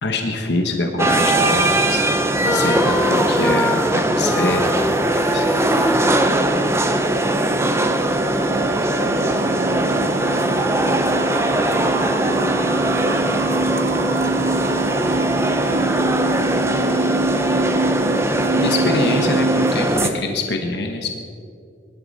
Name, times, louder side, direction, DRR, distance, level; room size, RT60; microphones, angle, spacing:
voice 1, 0.0-5.5 18.5-21.1, left 2 dB, 70° left, 4 dB, 1.3 m, -25 dB
sound 1, 1.0-20.1, right 1 dB, 15° right, 0.9 m, -20 dB
sound 2, 2.4-7.2, left 1 dB, 10° left, 0.5 m, -25 dB
sound 3, 5.5-19.7, right 3 dB, 65° right, 0.4 m, -26 dB
voice 2, 7.2-10.5 12.7-13.8 16.2-17.3 19.8-20.3, right 1 dB, 85° right, 4 dB, 1.8 m, -35 dB
23.5 x 12.0 x 4.2 m, 2.3 s
head